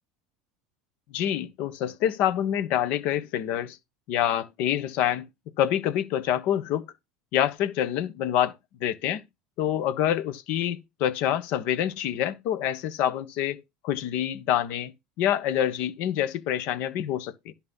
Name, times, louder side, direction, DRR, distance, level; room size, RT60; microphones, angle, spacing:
voice 1, 1.1-3.8 4.1-5.3 5.6-6.8 7.3-8.5 8.8-9.2 9.6-14.9 15.2-17.5, left 11 dB, 60° left, 1.2 m, -26 dB
10.5 x 4.2 x 5.5 m
supercardioid pair, 105°, 3 cm